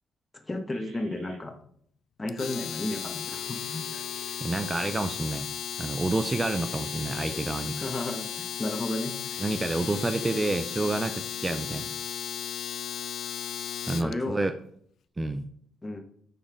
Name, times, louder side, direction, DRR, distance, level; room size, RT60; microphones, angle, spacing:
voice 1, 0.4-1.6 2.2-4.0 7.8-9.4 13.9-14.4 15.8-16.0, left 2 dB, 20° left, 5 dB, 1.3 m, -33 dB
sound 1, 0.7-1.3 3.3-4.3 6.3-7.3 9.3-10.4, right 5 dB, 90° right, 2.6 m, -50 dB
Domestic sounds home sounds, 2.3-14.1, left 9 dB, 65° left, 0.4 m, -35 dB
voice 2, 4.4-5.5 5.8-7.8 9.4-11.9 13.9-14.5 15.2-15.4, right 2 dB, 20° right, 9 dB, 0.5 m, -29 dB
9.0 x 4.3 x 5.0 m, 0.64 s
cardioid pair, 90°, 0 cm